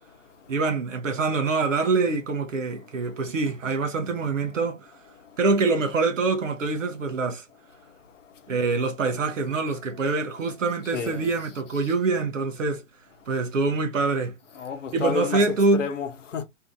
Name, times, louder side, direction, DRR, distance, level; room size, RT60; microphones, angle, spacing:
voice 1, 0.5-4.9 5.4-7.4 8.5-12.8 13.3-14.3 14.9-15.9, right 3 dB, 85° right, 0.7 m, -25 dB
voice 2, 10.8-11.3 11.7-11.8 14.5-16.4, left 6 dB, 75° left, 0.9 m, -31 dB
2.7 x 2.6 x 2.4 m
figure-of-eight pair, 115°, 37 cm